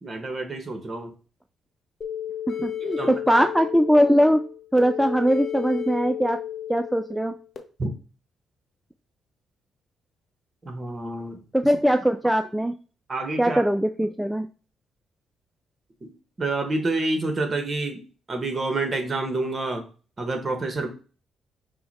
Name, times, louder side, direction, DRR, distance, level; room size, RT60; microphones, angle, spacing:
voice 1, 0.0-1.1 2.6-2.7 3.0-3.1 7.8-7.9 10.6-11.4 13.1-13.6 16.0-16.1 16.4-18.0 18.3-19.8 20.2-20.9, right 2 dB, 30° right, 5 dB, 1.2 m, -28 dB
sound 1, 2.0-7.6, left 10 dB, 50° left, 0.8 m, -33 dB
voice 2, 2.5-4.4 4.7-6.4 6.7-7.3 11.5-12.7 13.4-14.5, equal, 5° right, 7 dB, 0.3 m, -21 dB
5.5 x 2.2 x 4.1 m, 0.37 s
cardioid pair, 90°, 0 cm